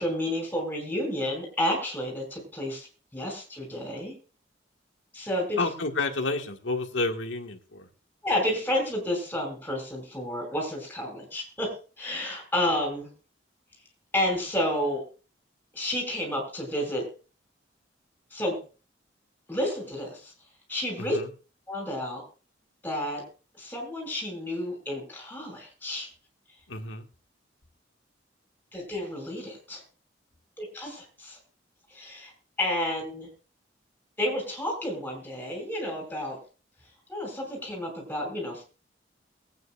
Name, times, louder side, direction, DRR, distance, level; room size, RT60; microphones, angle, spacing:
voice 1, 0.0-2.9 3.1-4.1 5.1-5.6 8.2-13.1 14.1-15.0 15.7-17.1 18.3-18.6 19.5-20.3 20.7-21.2 21.7-22.2 22.8-23.2 23.6-26.1 28.7-29.8 30.6-31.4 31.9-32.3 32.6-33.3 34.2-36.4 37.1-38.6, left 1 dB, 10° left, 0 dB, 5.4 m, -30 dB
voice 2, 5.6-7.9 21.0-21.3 26.7-27.0, left 3 dB, 90° left, 4 dB, 1.7 m, -30 dB
22.5 x 9.2 x 2.4 m, 0.35 s
head